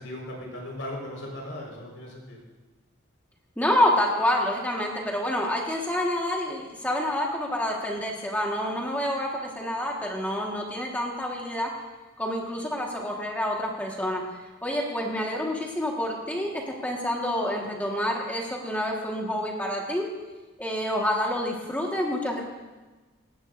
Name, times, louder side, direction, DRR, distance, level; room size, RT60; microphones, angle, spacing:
voice 1, 0.0-2.4, left 1 dB, 75° left, -3 dB, 4.8 m, -37 dB
voice 2, 3.6-11.7 12.2-14.2 14.6-20.1 20.6-22.4, left 1 dB, 10° left, -1 dB, 1.6 m, -28 dB
18.5 x 16.5 x 2.6 m, 1.2 s
head